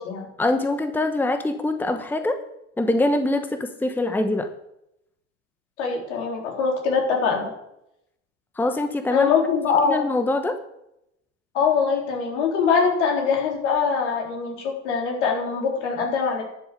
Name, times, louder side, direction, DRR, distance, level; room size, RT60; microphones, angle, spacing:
voice 1, 0.4-2.4 2.8-4.5 8.6-9.3 9.9-10.6, left 2 dB, 5° left, 8 dB, 0.9 m, -24 dB
voice 2, 5.8-7.5 9.1-10.0 11.5-16.4, left 5 dB, 70° left, 0 dB, 3.9 m, -23 dB
11.5 x 7.2 x 6.7 m, 0.81 s
figure-of-eight pair, 75°, 37 cm